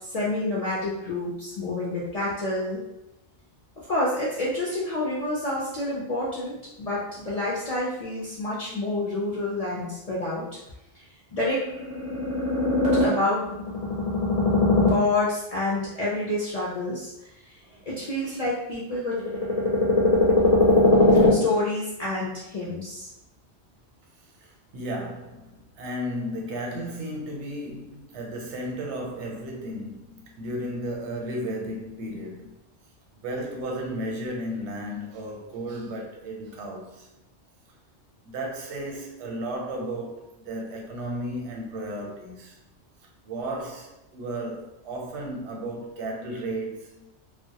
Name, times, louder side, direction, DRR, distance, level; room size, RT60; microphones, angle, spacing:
voice 1, 0.1-2.8 3.9-10.4 11.3-11.6 12.6-13.4 14.6-17.1 17.9-19.2 20.4-23.1, left 2 dB, 60° left, 0.4 m, -25 dB
voice 2, 24.4-32.6 33.2-37.1 38.2-42.6 43.2-47.1, right 1 dB, 90° right, 0.9 m, -34 dB
2.1 x 2.1 x 2.7 m
omnidirectional pair, 1.1 m